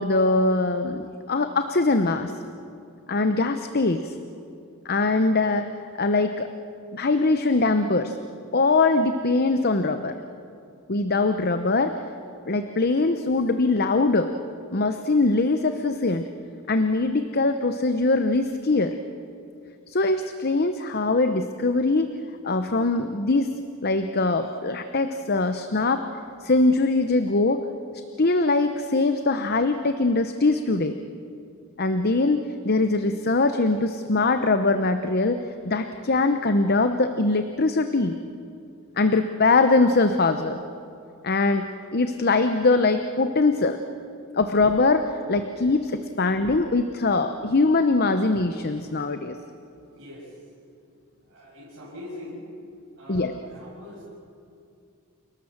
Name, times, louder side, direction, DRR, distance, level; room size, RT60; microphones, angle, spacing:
voice 1, 0.0-2.3 3.1-4.1 4.8-5.7 6.0-6.5 6.9-8.1 8.5-10.2 10.9-12.0 12.5-14.3 14.7-16.3 16.7-18.9 19.9-22.1 22.4-23.5 23.8-26.0 26.4-27.6 28.2-31.0 31.8-38.2 39.0-40.6 41.2-43.8 44.3-49.4 53.1-53.3, left 3 dB, 45° left, 8 dB, 0.8 m, -22 dB
voice 2, 49.9-50.4 51.2-52.5 52.9-54.0, left 1 dB, 60° right, -8 dB, 7.3 m, -42 dB
29.0 x 18.5 x 7.3 m, 2.5 s
head